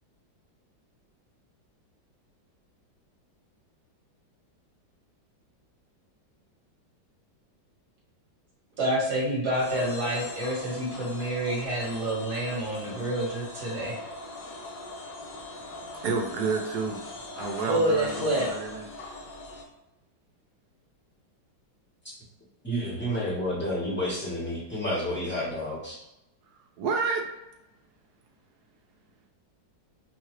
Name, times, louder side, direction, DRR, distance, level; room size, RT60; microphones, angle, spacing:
voice 1, 8.8-14.0 17.7-18.5, right 1 dB, 40° right, -4 dB, 1.4 m, -28 dB
sound 1, 9.5-19.6, left 2 dB, 70° left, 1.4 m, -41 dB
voice 2, 16.0-17.0 17.4-18.9 26.8-27.2, right 4 dB, 75° right, 2 dB, 0.9 m, -29 dB
voice 3, 22.6-26.0, equal, 10° left, -7 dB, 0.8 m, -30 dB
4.7 x 2.3 x 3.1 m, 0.92 s
omnidirectional pair, 2.1 m